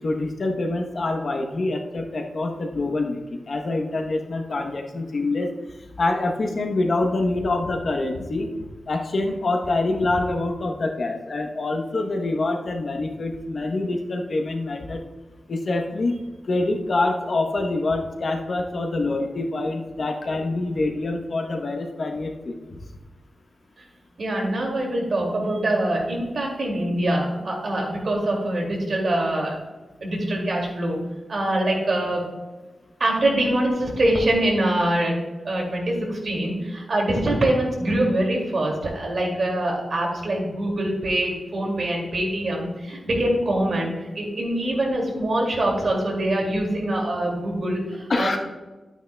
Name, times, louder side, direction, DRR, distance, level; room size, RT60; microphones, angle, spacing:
voice 1, 0.0-5.5 6.0-8.5 8.9-15.0 15.5-16.2 16.5-22.6 48.1-48.4, left 2 dB, 50° left, 3 dB, 0.9 m, -25 dB
voice 2, 24.2-29.6 30.0-31.0 31.3-32.3 33.0-35.2 35.4-48.4, right 1 dB, 50° right, -1 dB, 2.3 m, -24 dB
12.0 x 9.0 x 2.2 m, 1.2 s
wide cardioid pair, 170°, 0 cm